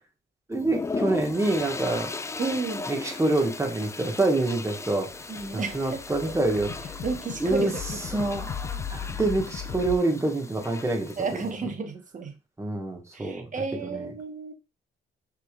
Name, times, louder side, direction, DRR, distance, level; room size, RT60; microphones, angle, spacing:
sound 1, 0.5-11.5, left 3 dB, 15° left, 0.4 m, -37 dB
voice 1, 0.5-2.1 2.9-5.1 5.5-7.0 7.4-11.4 12.6-13.5 13.8-14.1, right 2 dB, 15° right, 1.4 m, -27 dB
voice 2, 2.4-2.8 5.3-6.0 7.0-7.8 11.2-12.3 13.1-14.5, right 4 dB, 40° right, 1.1 m, -32 dB
sound 2, 5.1-10.0, left 7 dB, 50° left, 0.7 m, -37 dB
5.7 x 3.5 x 2.4 m
cardioid pair, 90°, 20 cm